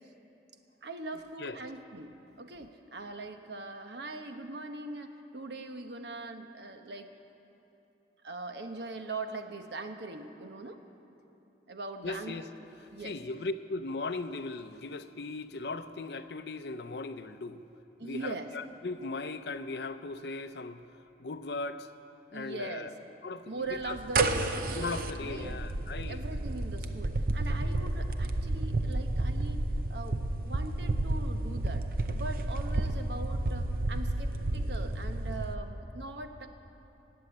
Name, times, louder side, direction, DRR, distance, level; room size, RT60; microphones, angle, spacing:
voice 1, 0.8-7.1 8.2-10.8 11.7-12.4 12.9-13.2 18.0-18.5 22.3-22.9 23.5-24.6 25.2-25.6 26.1-29.6 29.9-31.8 32.1-36.5, right 2 dB, 75° right, 6 dB, 1.0 m, -41 dB
voice 2, 12.0-12.5 13.0-17.6 18.0-20.8 21.2-21.9 22.3-22.9 23.2-24.0 24.4-26.2, left 3 dB, 70° left, 11 dB, 0.6 m, -38 dB
sound 1, 23.8-35.5, right 2 dB, 55° right, 0.7 m, -31 dB
19.0 x 7.7 x 8.7 m, 2.9 s
head